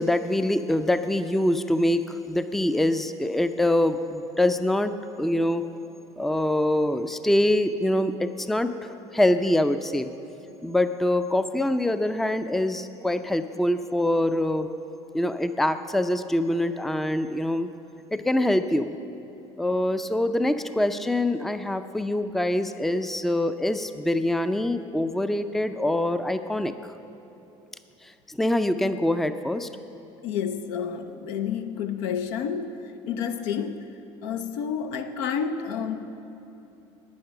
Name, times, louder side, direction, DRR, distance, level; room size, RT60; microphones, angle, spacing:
voice 1, 0.0-5.6 6.2-10.1 10.6-14.7 15.1-17.7 18.1-18.9 19.6-26.7 28.0-29.7, left 1 dB, ahead, 10 dB, 0.4 m, -24 dB
voice 2, 30.2-36.1, left 7 dB, 70° left, 8 dB, 0.7 m, -30 dB
10.5 x 9.3 x 5.8 m, 3.0 s
hypercardioid pair, 75°, 15 cm